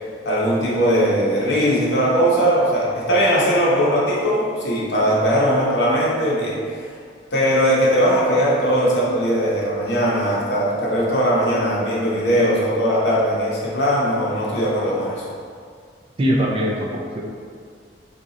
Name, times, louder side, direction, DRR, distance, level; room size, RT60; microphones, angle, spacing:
voice 1, 0.2-6.9 7.3-15.2, equal, 70° left, -5 dB, 0.8 m, -19 dB
voice 2, 16.2-17.2, equal, 30° right, -1 dB, 0.4 m, -21 dB
2.8 x 2.4 x 3.9 m, 2.1 s
head